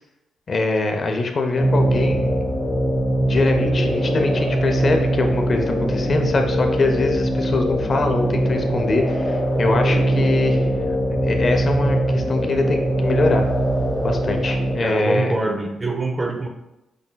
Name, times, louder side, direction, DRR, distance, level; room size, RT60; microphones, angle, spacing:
voice 1, 0.5-2.4 3.2-10.7 11.2-13.4 14.0-15.3, left 3 dB, 45° left, 4 dB, 0.5 m, -23 dB
sound 1, 1.6-14.8, right 1 dB, 15° left, 1.0 m, -21 dB
voice 2, 14.8-16.5, right 2 dB, 25° right, 4 dB, 0.6 m, -24 dB
5.0 x 3.8 x 2.2 m, 0.93 s
cardioid pair, 85°, 0 cm